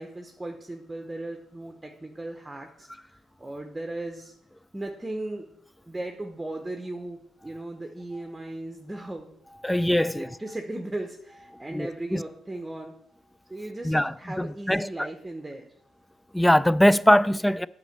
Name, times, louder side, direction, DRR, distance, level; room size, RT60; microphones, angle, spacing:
voice 1, 0.0-4.3 4.7-5.5 5.8-9.3 10.1-12.9 13.5-15.7, right 2 dB, 15° right, 0.9 m, -37 dB
voice 2, 9.6-10.3 11.7-12.2 13.8-15.1 16.3-17.7, equal, 5° left, 0.3 m, -22 dB
8.2 x 5.2 x 6.5 m
cardioid pair, 90°, 0 cm